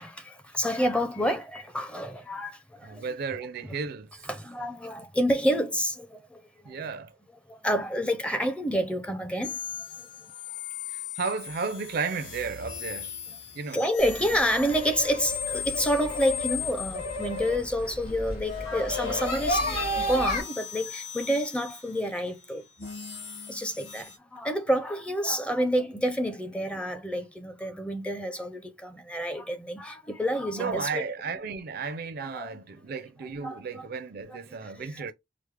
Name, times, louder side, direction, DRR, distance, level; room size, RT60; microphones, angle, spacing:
voice 1, 0.0-3.1 3.6-3.7 4.3-6.8 7.5-10.1 13.3-13.4 13.7-22.6 23.5-31.0 32.2-32.6 33.2-33.9 34.3-35.1, equal, 5° left, 0.5 m, -29 dB
voice 2, 2.8-4.1 6.6-7.1 10.3-10.6 10.9-13.2 13.5-13.8 30.5-35.1, right 5 dB, 50° right, 0.4 m, -34 dB
sound 1, 9.4-17.7 18.4-24.2, left 8 dB, 60° left, 1.5 m, -39 dB
sound 2, 14.0-20.4, left 1 dB, 80° left, 2.7 m, -32 dB
4.7 x 2.0 x 3.2 m
head